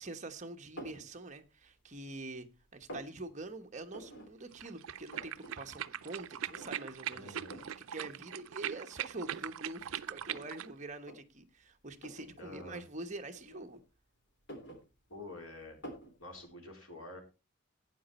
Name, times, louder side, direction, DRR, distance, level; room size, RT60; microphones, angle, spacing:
voice 1, 0.0-7.6 7.9-13.8, right 2 dB, 35° right, 1.1 m, -45 dB
sound 1, 0.8-1.1 1.6-2.3 2.5-3.1 3.9-4.3 4.6-4.7 4.9-5.5 5.9-6.0 6.5-7.0 7.5-7.8 8.6-8.7 9.2-10.6 11.0-11.2 12.0-12.3 13.3-14.0 14.3-15.3 15.8-16.1, equal, 55° left, 3.5 m, -48 dB
sound 2, 4.5-10.7, right 10 dB, 85° right, 0.5 m, -41 dB
voice 2, 7.1-7.6 12.4-12.8 15.1-15.8 16.2-17.2, left 2 dB, 85° left, 3.8 m, -48 dB
12.0 x 9.1 x 4.3 m
head